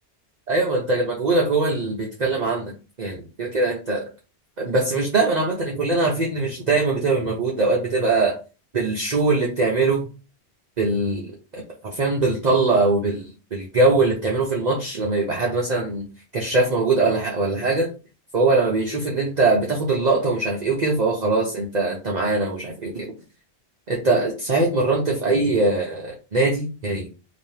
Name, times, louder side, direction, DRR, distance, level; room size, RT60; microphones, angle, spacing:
voice 1, 0.5-4.0 4.6-8.4 8.7-10.1 10.8-16.0 16.3-17.9 18.3-23.1 23.9-27.1, right 3 dB, 40° right, -2 dB, 0.9 m, -22 dB
4.0 x 2.8 x 3.3 m, 0.32 s
omnidirectional pair, 1.2 m